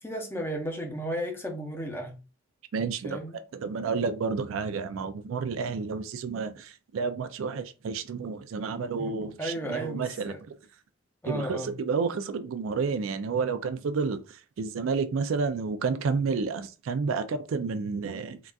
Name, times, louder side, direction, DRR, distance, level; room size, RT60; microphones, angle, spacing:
voice 1, 0.0-2.2 3.0-3.4 9.2-10.4 11.2-11.8, equal, 10° left, 0.6 m, -34 dB
voice 2, 2.7-3.2 3.6-10.3 11.3-14.2 14.6-18.4, right 5 dB, 70° right, 0.4 m, -30 dB
3.8 x 2.3 x 2.3 m
head